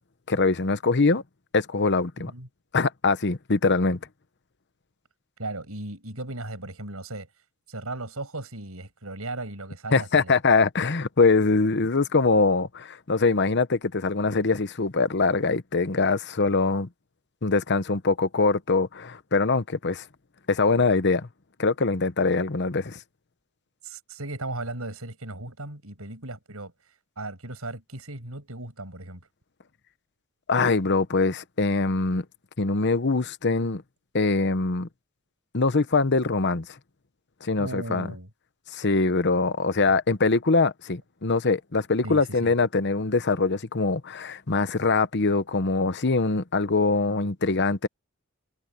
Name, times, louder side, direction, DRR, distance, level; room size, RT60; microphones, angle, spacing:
voice 1, 0.3-1.2 1.5-2.3 2.7-4.0 9.9-16.9 17.4-20.0 20.5-21.3 21.6-23.0 30.5-32.2 32.6-33.8 34.1-34.9 35.5-36.7 37.4-38.1 38.7-47.9, left 3 dB, 55° left, 1.0 m, -23 dB
voice 2, 2.2-2.5 5.4-7.3 7.7-10.3 23.8-26.7 27.2-29.2 37.6-38.3 39.8-39.9 42.0-42.5, right 2 dB, 85° right, 6.3 m, -36 dB
head